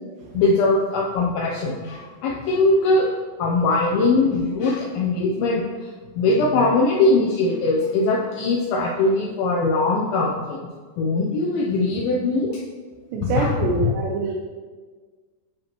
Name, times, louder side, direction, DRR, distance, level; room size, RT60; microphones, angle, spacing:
voice 1, 0.3-3.1 3.4-5.6 6.2-10.6 11.0-12.6 13.2-13.6 13.8-13.9, left 3 dB, 80° left, -3 dB, 2.2 m, -21 dB
voice 2, 13.1-14.3, right 3 dB, 90° right, 0 dB, 2.9 m, -24 dB
10.0 x 4.5 x 2.9 m, 1.5 s
omnidirectional pair, 4.9 m